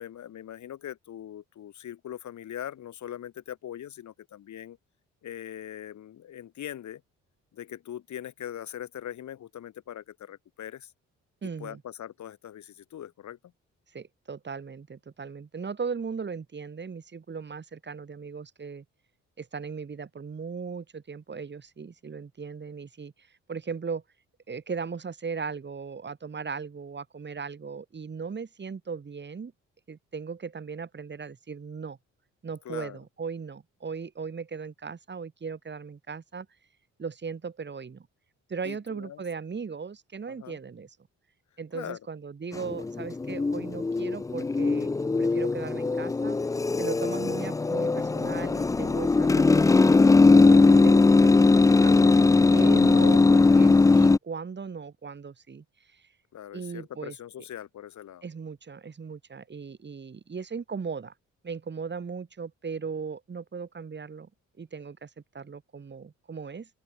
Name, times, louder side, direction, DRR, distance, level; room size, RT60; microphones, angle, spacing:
voice 1, 0.0-4.8 5.2-7.0 7.5-10.9 11.4-13.4 32.6-33.0 38.6-39.2 40.3-40.6 41.7-42.0 56.3-58.2, left 11 dB, 70° left, 7.6 m, -41 dB
voice 2, 11.4-11.8 13.9-18.8 19.4-24.0 24.5-29.5 29.9-32.0 32.4-36.5 37.0-38.1 38.5-41.0 41.6-44.9 45.2-46.4 46.8-50.0 50.4-56.1 56.5-57.1 58.2-61.1 61.4-64.3 64.6-66.7, right 5 dB, 35° right, 4.6 m, -37 dB
sound 1, 42.5-54.2, left 3 dB, 10° left, 0.4 m, -20 dB
open air
cardioid pair, 90°, 30 cm